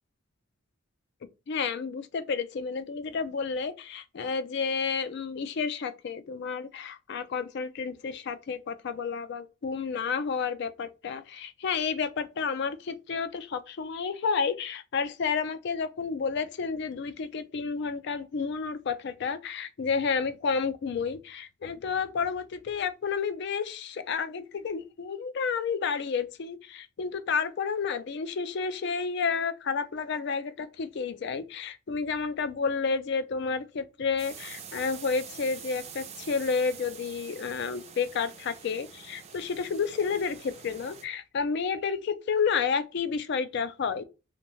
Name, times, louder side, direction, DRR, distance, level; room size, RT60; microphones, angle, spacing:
voice 1, 1.5-44.0, left 5 dB, 55° left, 0.3 m, -31 dB
sound 1, 34.2-41.0, right 7 dB, 30° right, 0.4 m, -46 dB
2.6 x 2.1 x 2.9 m
head